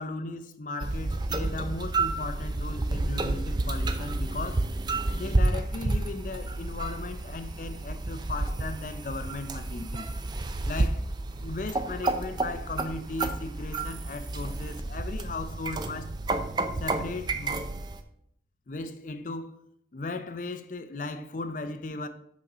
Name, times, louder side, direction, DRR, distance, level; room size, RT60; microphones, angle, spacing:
voice 1, 0.0-4.7 5.1-10.1 10.7-11.1 11.4-16.2 16.8-17.6 18.7-22.1, left 3 dB, 50° left, 0.5 m, -37 dB
sound 1, 0.8-18.0, right 2 dB, 25° right, 0.4 m, -30 dB
6.2 x 4.2 x 5.5 m
head